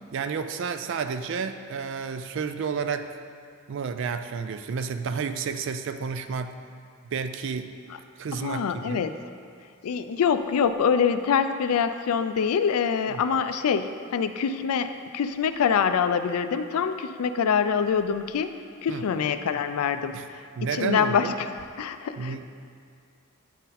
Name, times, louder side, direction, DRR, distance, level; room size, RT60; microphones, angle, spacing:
voice 1, 0.1-3.1 3.7-6.6 7.0-7.7 8.2-9.1 13.1-13.2 18.9-19.1 20.1-20.3 20.6-21.4 22.2-22.4, right 5 dB, 55° right, 9 dB, 0.3 m, -31 dB
voice 2, 8.3-9.1 9.8-18.5 18.8-20.4 20.7-21.5 21.8-22.4, left 6 dB, 85° left, 10 dB, 0.4 m, -25 dB
10.0 x 4.0 x 4.1 m, 2.2 s
head